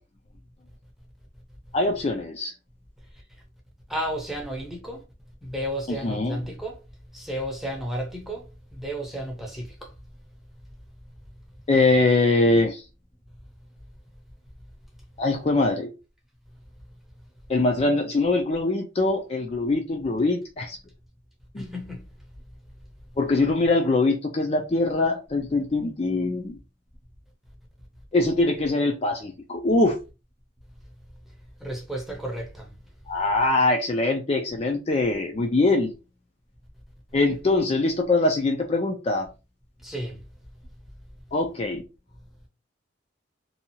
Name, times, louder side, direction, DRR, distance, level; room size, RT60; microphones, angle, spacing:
voice 1, 1.7-2.5 6.0-6.4 11.7-12.8 15.2-15.9 17.5-20.8 21.5-21.7 23.2-26.6 28.1-30.0 33.1-35.9 37.1-39.3 41.3-41.8, left 2 dB, 30° left, 0.4 m, -23 dB
voice 2, 3.9-5.0 5.4-6.8 7.1-8.5 8.7-9.9 21.6-22.0 31.6-32.7 39.8-40.2, equal, ahead, 0.7 m, -32 dB
2.7 x 2.3 x 2.8 m
head